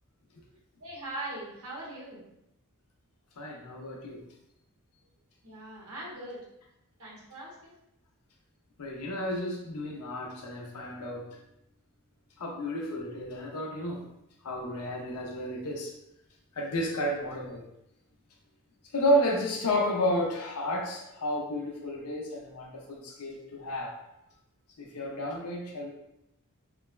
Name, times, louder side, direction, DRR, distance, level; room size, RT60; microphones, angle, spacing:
voice 1, 0.8-2.2 5.4-6.4 7.0-7.7, right 1 dB, 70° right, -4 dB, 1.0 m, -41 dB
voice 2, 3.4-4.2 8.8-11.3 12.4-14.0 14.4-15.9 16.6-17.7 18.9-24.0 24.8-25.9, equal, 85° left, 0 dB, 0.6 m, -31 dB
3.2 x 2.1 x 2.3 m, 0.81 s
head